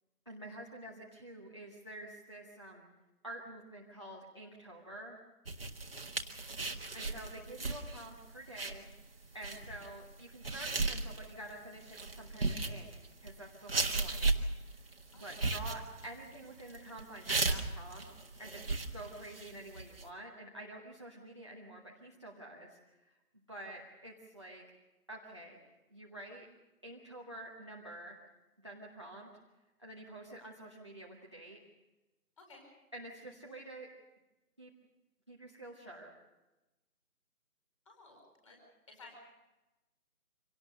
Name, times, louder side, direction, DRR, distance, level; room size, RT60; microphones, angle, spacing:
voice 1, 0.3-2.9 3.2-5.2 6.9-8.9 9.3-14.3 15.1-18.1 18.4-18.7 18.9-23.2 23.5-24.6 25.1-25.6 25.9-26.5 26.8-28.2 28.6-29.3 29.8-31.6 32.9-33.9 34.6-34.7 35.3-36.1, right 1 dB, 20° right, -1 dB, 1.1 m, -48 dB
sound 1, 5.5-20.0, right 3 dB, 40° right, 1.6 m, -36 dB
voice 2, 6.4-6.7 15.1-15.5 32.4-32.6 37.8-38.6 38.9-39.2, left 3 dB, 20° left, 1 dB, 4.7 m, -57 dB
25.5 x 17.5 x 6.6 m, 1.1 s
figure-of-eight pair, 170°, 45 cm